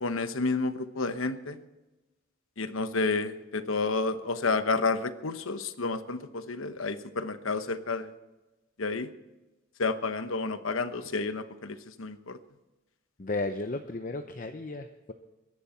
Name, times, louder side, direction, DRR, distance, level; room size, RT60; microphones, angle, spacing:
voice 1, 0.0-1.6 2.6-8.1 8.8-9.1 9.8-12.4, left 3 dB, 85° left, 11 dB, 1.0 m, -30 dB
voice 2, 13.2-15.1, left 2 dB, 40° left, 7 dB, 0.7 m, -34 dB
22.5 x 11.0 x 4.4 m, 1.1 s
head